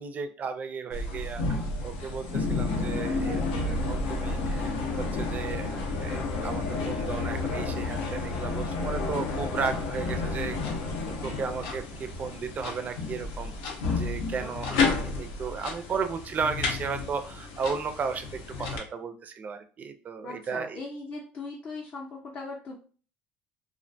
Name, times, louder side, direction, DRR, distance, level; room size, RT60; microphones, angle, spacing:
voice 1, 0.0-5.7 6.0-10.6 11.1-13.5 13.9-20.8, right 5 dB, 35° right, 8 dB, 0.4 m, -35 dB
sound 1, 0.9-18.8, left 3 dB, 85° left, 0.6 m, -31 dB
voice 2, 14.4-14.9 20.2-22.7, left 3 dB, 40° left, -2 dB, 0.6 m, -40 dB
2.4 x 2.1 x 2.6 m, 0.39 s
supercardioid pair, 105°, 5 cm